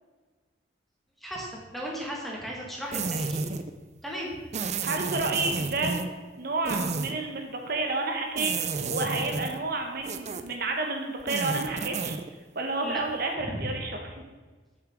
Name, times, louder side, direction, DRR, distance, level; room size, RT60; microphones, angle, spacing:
voice 1, 1.2-3.4 4.0-4.4 12.8-13.0 13.4-13.6, equal, ahead, -3 dB, 1.8 m, -36 dB
sound 1, 2.9-3.7 4.5-6.1 6.6-7.1 8.4-9.6 10.0-10.6 11.2-12.3, right 4 dB, 40° right, 0.5 m, -31 dB
voice 2, 4.8-6.0 6.4-12.2 12.5-14.0, right 2 dB, 55° right, 3 dB, 1.0 m, -30 dB
8.0 x 6.8 x 5.1 m, 1.4 s
head